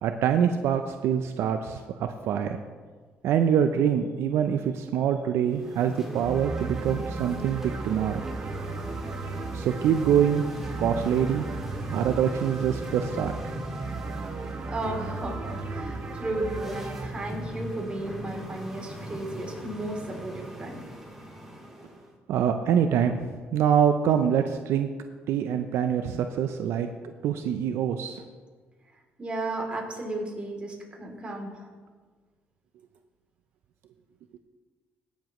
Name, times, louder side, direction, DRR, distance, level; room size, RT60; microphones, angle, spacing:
voice 1, 0.0-2.6 3.2-8.2 9.5-10.4 10.8-11.4 11.9-13.3 22.3-24.9 25.3-26.9 27.2-28.2, right 8 dB, 75° right, 7 dB, 0.5 m, -25 dB
sound 1, 5.4-22.1, right 1 dB, 5° right, 2.0 m, -39 dB
sound 2, 6.2-17.1, right 3 dB, 40° right, 1.0 m, -36 dB
voice 2, 14.7-20.8 29.2-31.7, right 2 dB, 25° right, 0 dB, 2.9 m, -34 dB
17.5 x 7.2 x 3.1 m, 1.5 s
cardioid pair, 90°, 4 cm